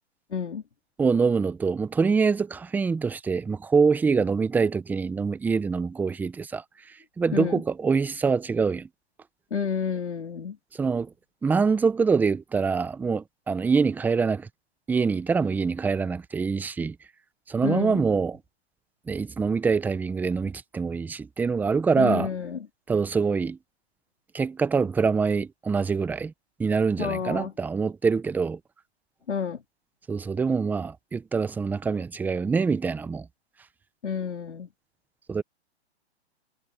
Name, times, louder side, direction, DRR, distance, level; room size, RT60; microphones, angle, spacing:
voice 1, 0.3-0.6 7.3-7.6 9.5-10.6 17.6-18.0 22.0-22.6 27.0-27.5 29.3-29.6 34.0-34.7, left 6 dB, 90° left, 4.1 m, -29 dB
voice 2, 1.0-8.9 10.7-11.1 11.4-14.5 14.9-17.0 17.5-18.4 19.1-22.3 22.9-23.6 24.3-26.3 26.6-28.6 30.1-33.3 35.3-35.4, right 5 dB, 5° right, 0.8 m, -25 dB
hypercardioid pair, 140°, 34 cm